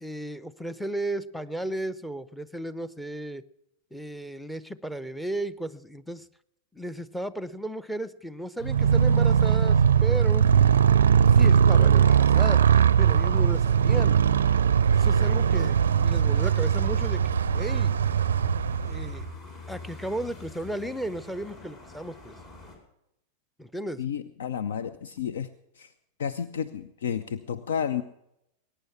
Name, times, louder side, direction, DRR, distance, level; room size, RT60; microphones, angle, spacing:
voice 1, 0.0-3.4 3.9-6.3 6.7-10.5 11.3-14.2 14.9-15.8 16.0-17.2 17.5-17.9 18.8-19.3 19.7-22.4 23.6-24.0, right 1 dB, ahead, 15 dB, 0.7 m, -34 dB
sound 1, 8.6-22.8, left 2 dB, 35° left, 4.9 m, -43 dB
Motorcycle, 8.6-19.3, right 8 dB, 65° right, 0.4 m, -20 dB
voice 2, 24.0-25.5 25.8-25.9 26.2-28.0, left 8 dB, 60° left, 13 dB, 0.6 m, -31 dB
21.0 x 9.8 x 5.8 m, 0.82 s
figure-of-eight pair, 90°, 0 cm